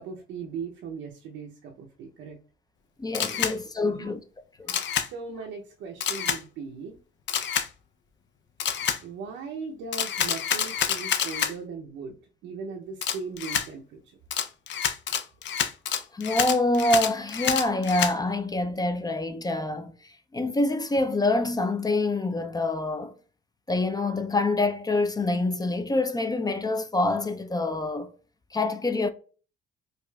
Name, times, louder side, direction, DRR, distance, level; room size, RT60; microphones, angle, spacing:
voice 1, 0.0-2.4 3.3-3.5 3.8-4.1 5.0-7.0 9.0-14.2, right 5 dB, 85° right, 0.6 m, -38 dB
voice 2, 3.0-4.2 4.6-4.8 16.1-23.1 23.7-28.1 28.5-29.1, left 2 dB, 20° left, 0.4 m, -26 dB
Camera, 3.1-3.5 4.7-5.1 6.0-6.4 7.3-7.7 8.6-9.0 9.9-11.5 13.0-13.7 14.3-18.1, left 9 dB, 65° left, 0.6 m, -27 dB
4.7 x 2.4 x 2.3 m
cardioid pair, 90°, 20 cm